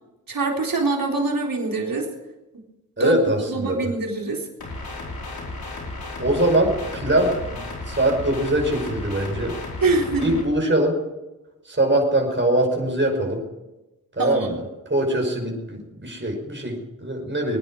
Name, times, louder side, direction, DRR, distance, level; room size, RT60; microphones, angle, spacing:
voice 1, 0.3-2.1 3.0-3.2 3.5-4.5 9.8-10.4 14.2-14.5, right 3 dB, 65° right, 0 dB, 4.1 m, -24 dB
voice 2, 3.0-3.9 6.2-9.6 10.2-11.0 11.7-13.4 14.2-14.6 14.9-17.6, right 1 dB, 30° right, 1 dB, 5.8 m, -22 dB
sound 1, 4.6-10.4, left 2 dB, 75° left, 4.7 m, -34 dB
22.5 x 10.0 x 6.4 m, 1.0 s
cardioid pair, 40°, 37 cm